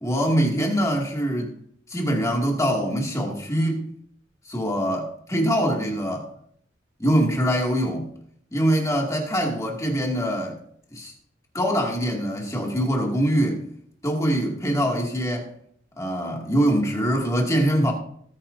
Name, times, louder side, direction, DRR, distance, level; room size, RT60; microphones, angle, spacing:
voice 1, 0.0-1.5 1.9-3.8 4.5-6.3 7.0-8.1 8.5-10.6 10.9-11.1 11.5-13.6 14.0-15.5 16.0-17.9, equal, 15° left, 2.2 m, -23 dB
19.5 x 8.9 x 2.7 m
head